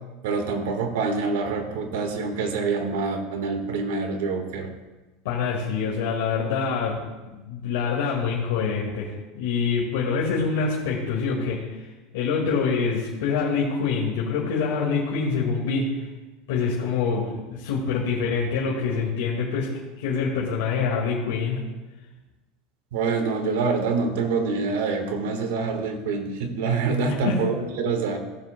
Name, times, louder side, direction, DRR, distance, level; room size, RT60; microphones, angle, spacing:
voice 1, 0.2-4.7 22.9-28.2, right 4 dB, 85° right, 5 dB, 1.5 m, -26 dB
voice 2, 5.2-11.6 12.1-16.1 16.5-19.7 20.0-21.6 27.2-27.4, left 5 dB, 85° left, -4 dB, 1.9 m, -25 dB
15.5 x 7.7 x 2.2 m, 1.1 s
supercardioid pair, 170°, 0 cm